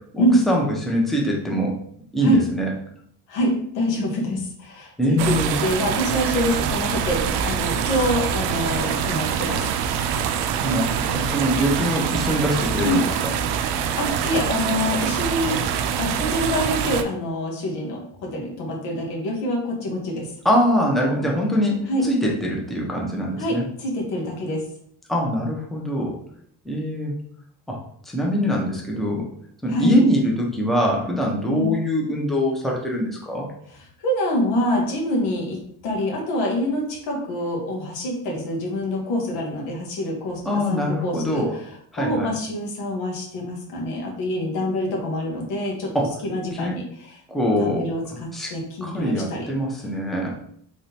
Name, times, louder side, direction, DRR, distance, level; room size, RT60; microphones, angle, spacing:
voice 1, 0.1-1.8 2.1-2.7 5.0-5.6 10.6-13.3 20.4-23.6 25.1-26.2 26.7-27.1 27.7-27.8 28.1-29.2 29.6-33.5 40.4-41.5 41.9-42.3 45.9-46.1 46.5-46.7 47.3-47.9 48.3-48.5 48.8-50.3, equal, ahead, -2 dB, 0.8 m, -23 dB
voice 2, 3.3-9.7 12.8-13.1 14.0-15.7 16.0-20.3 21.9-22.0 23.4-24.6 29.7-29.9 31.5-31.7 34.0-41.6 42.0-45.9 46.2-47.2 47.6-49.5, left 1 dB, 75° left, -1 dB, 1.3 m, -26 dB
sound 1, 5.2-17.0, right 8 dB, 85° right, 0.5 m, -25 dB
3.7 x 3.2 x 2.8 m, 0.65 s
cardioid pair, 100°, 41 cm